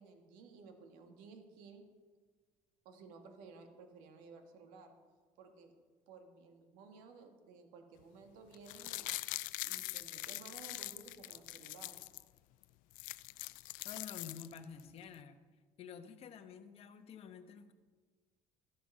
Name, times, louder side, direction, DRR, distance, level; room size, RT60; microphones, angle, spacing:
voice 1, 0.0-1.8 2.9-4.9 5.4-5.8 6.1-9.1 9.6-12.0, right 4 dB, 90° right, 5 dB, 1.7 m, -56 dB
sound 1, 8.5-12.2 12.6-12.7 12.9-14.8 15.1-15.2, left 19 dB, 75° left, 0.4 m, -43 dB
voice 2, 13.8-15.4 15.8-17.7, left 7 dB, 45° left, 7 dB, 1.1 m, -50 dB
14.0 x 12.0 x 5.4 m, 1.5 s
cardioid pair, 135°, 14 cm